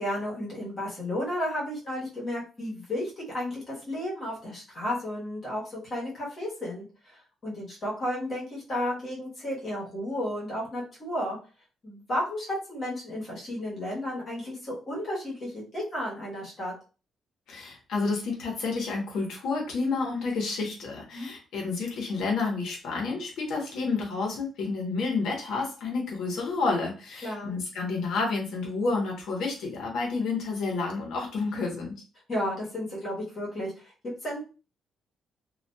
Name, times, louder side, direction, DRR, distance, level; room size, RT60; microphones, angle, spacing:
voice 1, 0.0-11.4 11.8-16.7 21.1-21.3 27.2-27.5 32.3-34.4, left 1 dB, 35° left, -5 dB, 1.1 m, -33 dB
voice 2, 17.5-31.9, left 4 dB, 70° left, -1 dB, 0.9 m, -30 dB
2.7 x 2.3 x 2.2 m, 0.36 s
cardioid pair, 160°, 0 cm